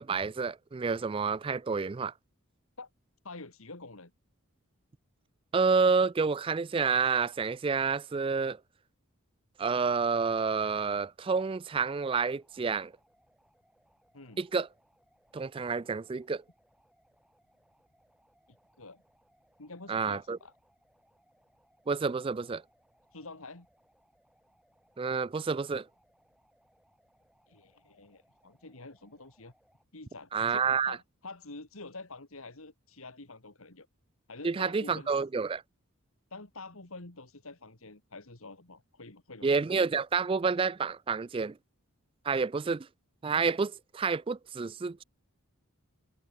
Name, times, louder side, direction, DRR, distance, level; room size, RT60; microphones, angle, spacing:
voice 1, 0.0-2.1 5.5-8.6 9.6-12.9 14.4-14.7 15.3-16.4 19.9-20.4 21.9-22.6 25.0-25.9 30.3-31.0 34.4-35.6 39.4-41.6 42.3-42.9 43.2-45.0, right 5 dB, 25° right, 0.3 m, -29 dB
voice 2, 3.2-4.1 14.1-14.4 18.5-19.0 19.6-20.5 23.1-23.7 27.5-29.5 29.9-33.9 34.3-35.2 36.3-39.5, left 3 dB, 70° left, 2.6 m, -47 dB
sound 1, 11.6-29.8, equal, 5° right, 5.8 m, -70 dB
open air
head